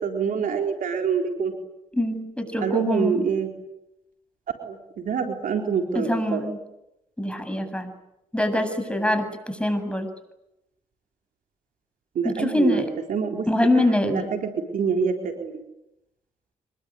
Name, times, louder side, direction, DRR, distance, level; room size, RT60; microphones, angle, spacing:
voice 1, 0.0-1.5 2.6-3.5 4.6-6.4 12.1-12.8 13.1-15.5, right 6 dB, 70° right, 3 dB, 3.9 m, -26 dB
voice 2, 1.9-3.2 5.9-6.6 7.2-7.9 8.3-10.1 12.2-12.9 13.5-14.3, left 1 dB, 5° left, 9 dB, 7.7 m, -24 dB
25.5 x 22.5 x 9.6 m, 0.90 s
supercardioid pair, 55°, 15 cm